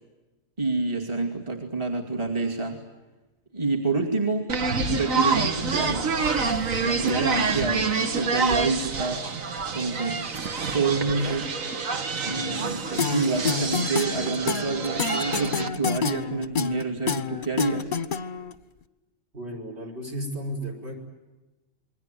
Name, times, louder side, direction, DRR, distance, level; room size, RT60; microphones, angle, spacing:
voice 1, 0.6-2.8 3.5-4.5 4.9-6.1 6.8-9.3 9.7-10.2 10.7-11.5 12.2-17.9, right 3 dB, 20° right, 0 dB, 2.5 m, -28 dB
sound 1, 4.5-15.7, right 4 dB, 70° right, 1.9 m, -27 dB
sound 2, 13.0-18.5, left 6 dB, 40° left, 1.1 m, -28 dB
voice 2, 19.3-20.9, equal, 50° right, 4 dB, 5.7 m, -34 dB
28.0 x 21.5 x 9.2 m, 1.1 s
omnidirectional pair, 1.4 m